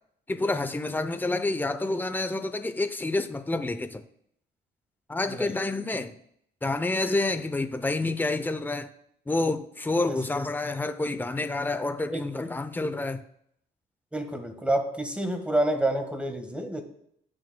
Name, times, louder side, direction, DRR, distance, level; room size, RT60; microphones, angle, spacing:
voice 1, 0.3-4.0 5.1-6.1 6.6-8.9 9.3-13.2, left 2 dB, 10° left, 0.6 m, -28 dB
voice 2, 12.1-12.5 14.1-16.8, right 1 dB, 5° right, 1.5 m, -28 dB
16.5 x 6.3 x 2.3 m
cardioid pair, 90°, 20 cm